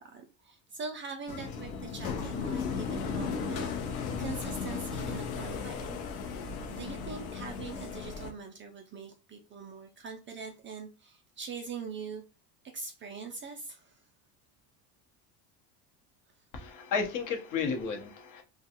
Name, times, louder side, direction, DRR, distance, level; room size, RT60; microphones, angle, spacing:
voice 1, 0.0-6.0 6.7-12.2 12.7-14.1, right 5 dB, 30° right, 3 dB, 0.4 m, -43 dB
sound 1, 1.3-8.3, left 5 dB, 75° left, 0.8 m, -35 dB
voice 2, 16.5-18.4, left 5 dB, 45° left, 3 dB, 0.9 m, -33 dB
2.4 x 2.3 x 2.8 m, 0.32 s
supercardioid pair, 100°, 44 cm